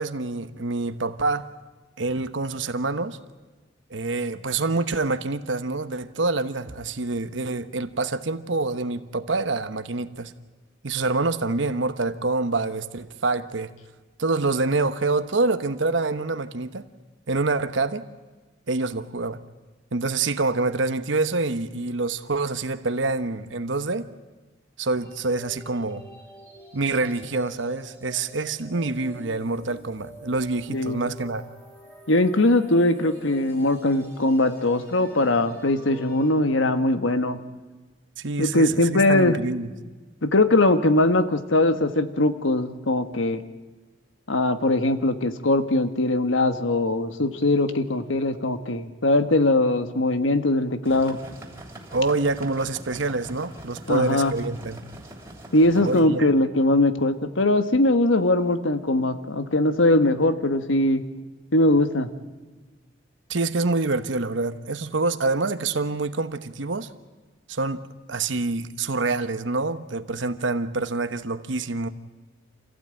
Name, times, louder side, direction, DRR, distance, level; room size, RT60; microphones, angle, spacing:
voice 1, 0.0-1.5 2.0-3.2 3.9-10.3 10.8-13.7 14.2-16.9 17.3-18.0 18.7-19.4 19.9-24.1 24.8-26.0 26.7-31.4 38.2-39.7 51.9-54.8 55.8-56.3 63.3-66.9 67.5-67.8 68.1-71.9, right 3 dB, 70° right, 1.0 m, -26 dB
sound 1, 25.0-36.3, right 1 dB, 10° left, 4.7 m, -46 dB
voice 2, 30.7-31.1 32.1-37.4 38.4-39.4 40.2-43.4 44.3-51.2 53.9-54.3 55.5-61.0 61.5-62.1, left 2 dB, 85° left, 1.4 m, -21 dB
sound 2, 50.8-56.0, right 1 dB, 15° right, 3.2 m, -43 dB
27.0 x 15.5 x 9.0 m
head